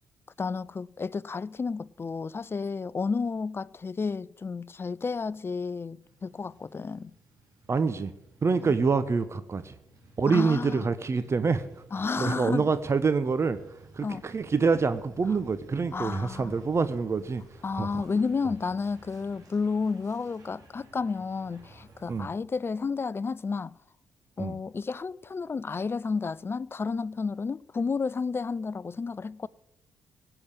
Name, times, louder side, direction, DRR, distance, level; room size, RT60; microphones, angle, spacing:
voice 1, 0.4-7.1 8.7-8.8 10.3-10.9 11.9-12.7 14.0-14.3 15.9-16.5 17.6-23.8 24.4-29.5, left 4 dB, 35° left, 0.5 m, -31 dB
Truck, 6.0-22.2, right 2 dB, 55° right, 3.9 m, -55 dB
voice 2, 7.7-8.1 8.4-9.7 10.2-11.7 12.2-13.6 13.9-17.4 17.8-17.9 22.1-22.3 24.4-24.5, right 4 dB, 40° right, 0.9 m, -26 dB
17.0 x 7.0 x 8.3 m
hypercardioid pair, 45°, 7 cm